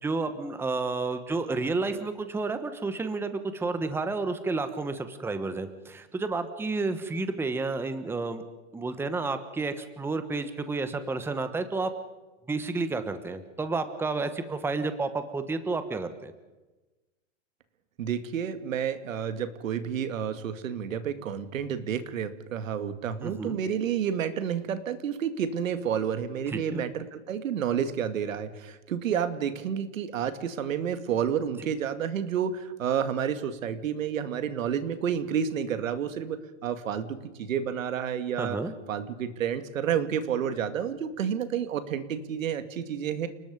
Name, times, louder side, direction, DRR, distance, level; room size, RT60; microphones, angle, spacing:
voice 1, 0.0-8.4 8.7-11.9 12.5-16.3 23.2-23.6 26.5-26.8 38.4-38.7, right 3 dB, 5° right, 10 dB, 1.2 m, -31 dB
voice 2, 18.0-38.6 38.9-43.3, right 8 dB, 85° right, 10 dB, 2.3 m, -30 dB
29.5 x 20.0 x 5.3 m, 1.1 s
supercardioid pair, 145°, 39 cm